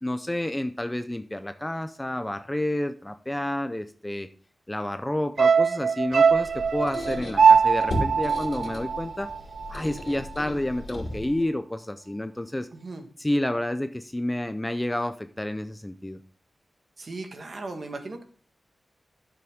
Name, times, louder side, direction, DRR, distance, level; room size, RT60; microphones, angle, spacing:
voice 1, 0.0-4.3 4.7-9.3 9.7-12.7 13.2-16.2, left 1 dB, 10° left, 9 dB, 0.5 m, -30 dB
sound 1, 5.4-9.8 10.1-10.2, right 6 dB, 80° right, 0.3 m, -21 dB
Squeak, 6.2-11.5, left 1 dB, 50° left, 3.0 m, -36 dB
voice 2, 12.7-13.0 17.0-18.2, right 3 dB, 45° right, 5 dB, 1.5 m, -37 dB
12.0 x 6.9 x 3.6 m, 0.43 s
wide cardioid pair, 160°, 0 cm